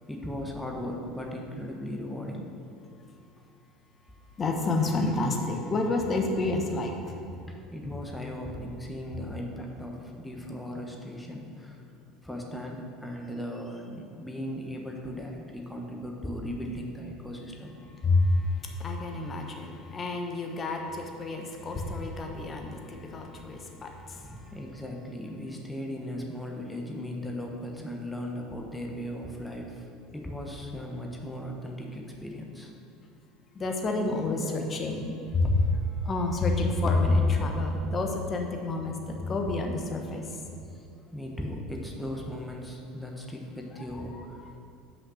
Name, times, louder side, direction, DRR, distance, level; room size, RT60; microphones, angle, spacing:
voice 1, 0.1-2.5 7.5-11.8 12.2-17.8 24.1-29.9 30.1-32.7 40.7-44.6, equal, 5° left, 0 dB, 1.2 m, -37 dB
voice 2, 4.4-7.2 18.0-24.5 33.5-40.4 43.8-44.5, left 2 dB, 30° left, 2 dB, 1.1 m, -29 dB
5.8 x 5.5 x 6.4 m, 2.5 s
hypercardioid pair, 70°, 0 cm